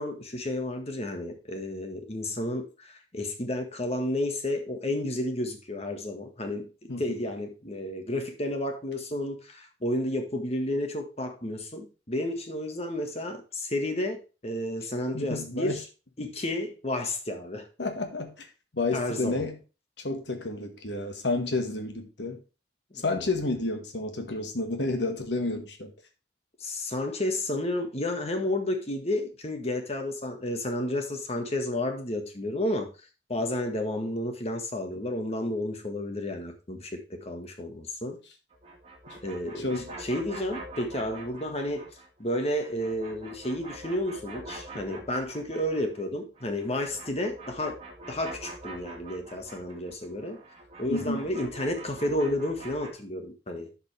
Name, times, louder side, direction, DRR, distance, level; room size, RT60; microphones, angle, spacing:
voice 1, 0.0-15.9 16.2-17.7 18.9-19.5 22.9-23.3 26.6-32.9 33.3-38.2 39.2-41.9 42.2-47.8 48.1-50.4 50.8-53.7, left 1 dB, 35° left, 1.6 m, -31 dB
voice 2, 15.1-15.8 17.8-18.5 18.7-19.6 20.0-22.4 23.0-25.9 39.6-39.9 50.9-51.2, left 2 dB, 80° left, 1.7 m, -30 dB
sound 1, 38.5-42.1 42.4-46.1 46.3-52.9, right 2 dB, 35° right, 2.1 m, -45 dB
11.0 x 5.5 x 3.4 m
head